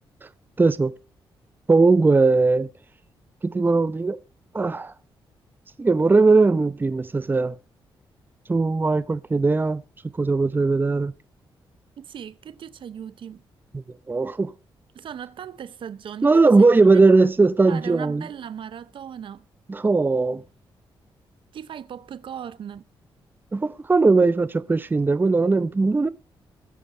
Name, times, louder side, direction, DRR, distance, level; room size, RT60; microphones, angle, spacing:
voice 1, 0.6-0.9 1.7-2.7 3.4-4.2 4.5-4.9 5.8-7.6 8.5-9.8 10.1-11.1 13.7-14.5 16.2-18.2 19.7-20.4 23.5-26.1, right 3 dB, 20° right, 0.6 m, -19 dB
voice 2, 12.0-13.4 14.9-16.7 17.7-19.4 21.5-22.8, right 8 dB, 65° right, 0.7 m, -37 dB
20.0 x 7.4 x 4.4 m
cardioid pair, 80°, 9 cm